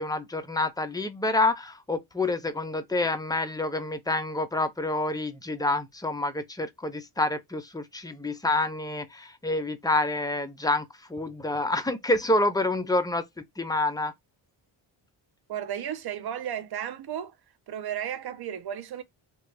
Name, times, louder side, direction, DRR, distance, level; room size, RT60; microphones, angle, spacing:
voice 1, 0.0-13.3 13.6-14.1, left 2 dB, 10° left, 0.6 m, -28 dB
voice 2, 15.5-17.3 17.7-19.0, right 9 dB, 55° right, 0.7 m, -34 dB
3.0 x 2.5 x 3.2 m
cardioid pair, 100°, 46 cm